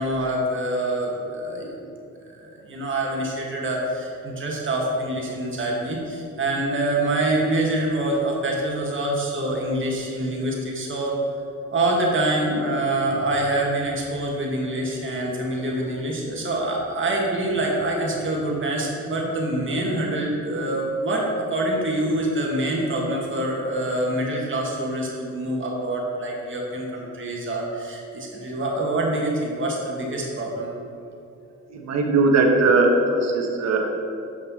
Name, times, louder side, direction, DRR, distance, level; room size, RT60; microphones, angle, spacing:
voice 1, 0.0-1.7 2.3-11.2 11.7-30.7, right 1 dB, 40° right, -2 dB, 1.8 m, -25 dB
voice 2, 31.7-33.9, right 3 dB, 60° right, 1 dB, 1.2 m, -19 dB
7.5 x 5.3 x 4.1 m, 2.6 s
cardioid pair, 90°, 30 cm